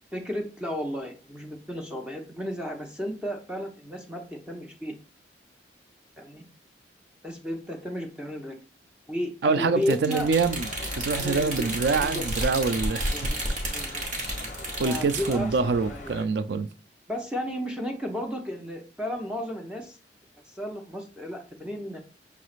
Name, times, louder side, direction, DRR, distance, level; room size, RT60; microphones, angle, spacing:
voice 1, 0.1-4.9 6.2-6.4 7.2-8.6 9.1-10.3 11.2-11.8 12.0-12.3 13.1-13.4 13.7-14.0 14.8-15.5 15.8-16.3 17.1-20.0 20.5-22.0, equal, 5° right, 0.5 m, -33 dB
voice 2, 9.4-10.7 11.0-13.1 13.7-14.0 14.8-16.7, right 4 dB, 65° right, 0.4 m, -25 dB
sound 1, 9.8-15.4, right 1 dB, 45° right, 1.0 m, -32 dB
sound 2, 10.2-16.2, left 2 dB, 40° left, 0.6 m, -40 dB
5.6 x 3.1 x 2.4 m
head